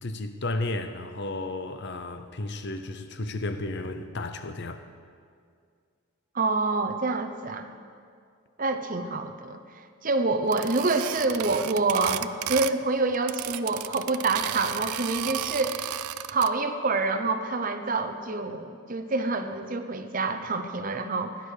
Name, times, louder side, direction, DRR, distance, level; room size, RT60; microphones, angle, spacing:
voice 1, 0.0-4.8, left 2 dB, 50° left, 9 dB, 0.8 m, -33 dB
voice 2, 6.3-7.7 8.6-15.9 16.3-21.4, right 3 dB, 40° right, 7 dB, 0.7 m, -27 dB
sound 1, 10.5-12.8 13.1-16.5, right 12 dB, 85° right, 0.4 m, -33 dB
17.0 x 10.5 x 5.0 m, 2.2 s
head